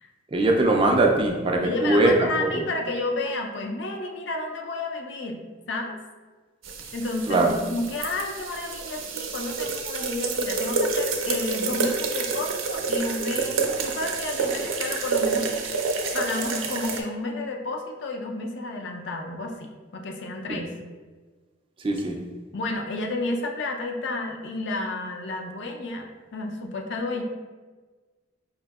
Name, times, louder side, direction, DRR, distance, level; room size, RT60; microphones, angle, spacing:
voice 1, 0.3-2.6 7.3-7.5 20.5-20.7 21.8-22.2, right 2 dB, 25° right, 1 dB, 0.3 m, -21 dB
voice 2, 1.6-5.4 5.7-6.0 6.9-15.7 16.1-20.7 22.5-27.2, left 2 dB, 60° left, 2 dB, 0.5 m, -31 dB
sound 1, 6.6-17.0, right 4 dB, 80° right, 0.5 m, -28 dB
4.9 x 2.7 x 2.3 m, 1.4 s
head